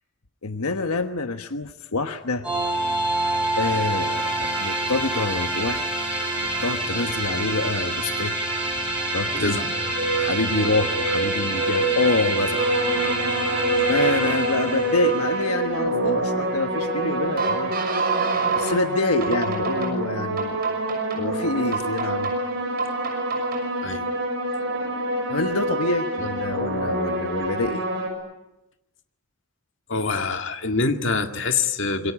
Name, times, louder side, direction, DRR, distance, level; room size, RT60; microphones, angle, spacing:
voice 1, 0.4-2.5 3.6-5.9 6.4-8.4 8.9-9.6 10.2-12.6 13.9-17.7 18.1-20.6 21.1-22.3 25.3-27.8, left 3 dB, 85° left, 7 dB, 1.2 m, -26 dB
sound 1, 2.4-15.5, right 2 dB, 5° right, 7.1 m, -27 dB
voice 2, 9.3-9.7 23.8-24.0 29.9-32.1, left 4 dB, 55° left, 5 dB, 2.0 m, -25 dB
sound 2, 9.7-18.7 19.2-19.9 20.4-21.2 21.7-22.3 22.8-23.6, right 3 dB, 40° right, 6.2 m, -27 dB
sound 3, 12.6-28.1, right 1 dB, 60° right, 7.1 m, -28 dB
26.5 x 22.5 x 9.8 m, 0.92 s
head